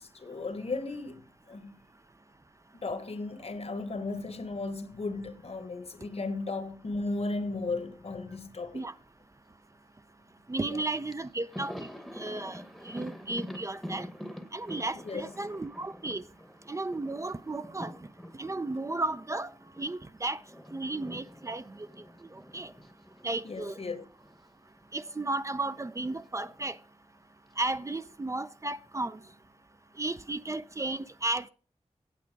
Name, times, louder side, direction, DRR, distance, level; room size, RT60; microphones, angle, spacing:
voice 1, 0.0-1.7 2.7-8.9 10.6-10.8 15.0-15.3 23.4-24.0, left 3 dB, 60° left, 1.1 m, -35 dB
voice 2, 10.5-11.9 12.2-14.1 14.5-16.2 16.7-17.9 18.4-19.5 19.8-20.4 20.7-21.8 22.5-22.7 23.2-23.8 24.9-26.8 27.6-29.2 30.0-31.5, right 2 dB, 25° right, 0.4 m, -34 dB
Thunder, 11.1-19.9 20.2-24.5 24.7-24.9 26.1-26.8, equal, ahead, 1.0 m, -46 dB
8.4 x 8.0 x 4.6 m
wide cardioid pair, 70°, 12 cm